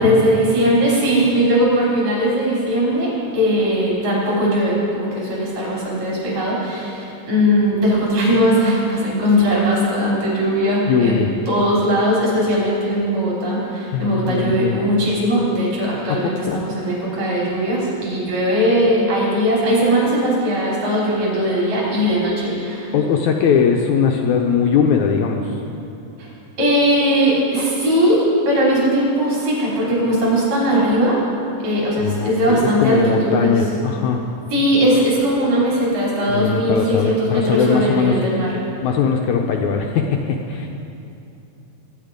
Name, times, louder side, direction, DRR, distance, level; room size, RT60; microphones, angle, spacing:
voice 1, 0.0-23.0 26.6-31.2 31.6-33.6 34.5-38.5, equal, 50° right, -6 dB, 5.8 m, -19 dB
voice 2, 10.9-11.3 13.9-14.8 16.1-16.6 22.1-22.2 22.9-25.6 32.0-34.2 36.3-38.1 38.8-40.7, left 6 dB, 80° left, 2 dB, 1.7 m, -20 dB
22.5 x 9.7 x 5.2 m, 2.7 s
omnidirectional pair, 4.2 m